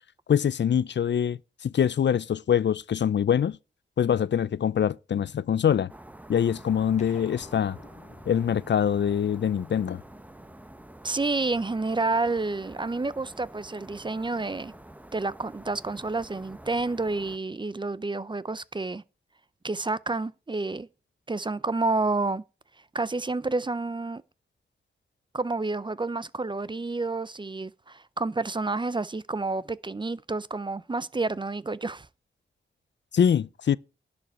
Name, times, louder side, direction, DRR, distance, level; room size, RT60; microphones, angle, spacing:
voice 1, 0.3-3.6 4.0-5.9 6.3-7.8 8.3-10.0 33.1-33.8, left 8 dB, 60° left, 0.4 m, -24 dB
sound 1, 5.9-17.4, right 1 dB, 5° right, 1.0 m, -48 dB
sound 2, 7.0-11.7, left 3 dB, 35° left, 1.8 m, -52 dB
voice 2, 11.0-14.7 15.1-19.0 19.6-20.9 21.3-22.4 22.9-24.2 25.3-32.1, right 3 dB, 25° right, 0.5 m, -29 dB
11.0 x 5.2 x 7.8 m
wide cardioid pair, 110°, 20 cm